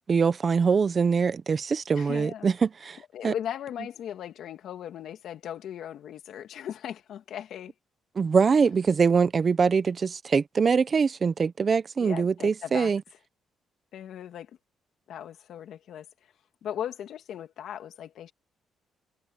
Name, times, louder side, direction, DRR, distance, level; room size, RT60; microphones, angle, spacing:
voice 1, 0.1-3.0 3.2-3.3 8.2-13.0, right 5 dB, 40° right, 0.9 m, -23 dB
voice 2, 1.9-2.5 3.1-7.7 12.0-12.9 13.9-14.6 15.1-16.1 16.6-18.3, left 10 dB, 70° left, 2.3 m, -38 dB
cardioid pair, 90°, 0 cm